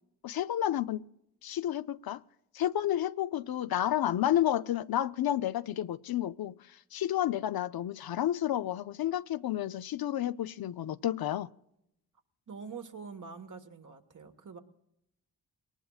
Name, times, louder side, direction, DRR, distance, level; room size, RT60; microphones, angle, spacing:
voice 1, 0.2-1.0 1.4-2.2 2.5-6.6 6.9-11.5, left 12 dB, 60° left, 0.5 m, -31 dB
voice 2, 12.5-14.6, right 5 dB, 45° right, 1.4 m, -45 dB
22.5 x 18.5 x 2.4 m
supercardioid pair, 45°, 42 cm